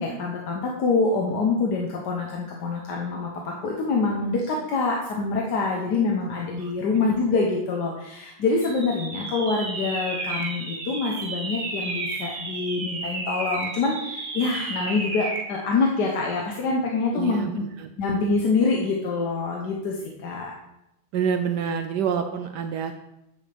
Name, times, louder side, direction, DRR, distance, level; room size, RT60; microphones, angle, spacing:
voice 1, 0.0-17.6 18.0-20.5, left 3 dB, 60° left, 0 dB, 1.4 m, -25 dB
sound 1, 8.6-15.5, right 3 dB, 35° right, 0.8 m, -32 dB
voice 2, 17.1-17.9 21.1-22.9, right 7 dB, 75° right, 7 dB, 0.9 m, -27 dB
9.6 x 8.7 x 3.4 m, 0.87 s
omnidirectional pair, 2.3 m